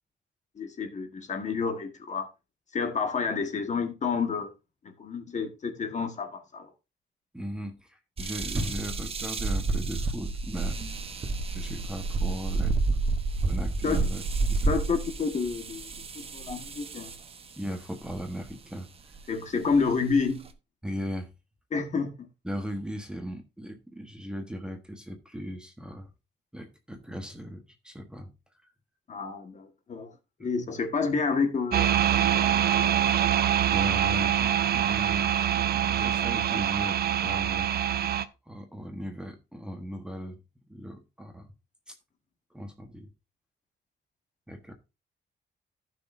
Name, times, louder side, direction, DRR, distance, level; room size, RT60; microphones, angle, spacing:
voice 1, 0.6-2.3 2.7-4.5 5.0-6.7 13.8-14.0 14.7-15.9 16.3-17.1 19.3-20.5 21.7-22.3 29.1-30.1 30.4-32.9, left 5 dB, 40° left, 1.5 m, -29 dB
voice 2, 7.3-10.8 11.5-12.7 13.4-14.2 14.5-14.8 17.6-18.9 20.8-21.3 22.4-26.1 26.5-28.3 28.6-28.7 30.7-30.8 33.7-37.7 38.5-40.4 40.7-41.5 41.9-42.0 42.5-43.1 44.5-44.7, equal, 5° right, 1.2 m, -38 dB
sound 1, 8.2-17.3 18.1-18.5 19.2-19.3 19.7-20.5, right 3 dB, 30° right, 1.0 m, -30 dB
sound 2, 31.7-38.3, right 10 dB, 55° right, 0.7 m, -24 dB
15.5 x 6.1 x 2.6 m
wide cardioid pair, 165°, 19 cm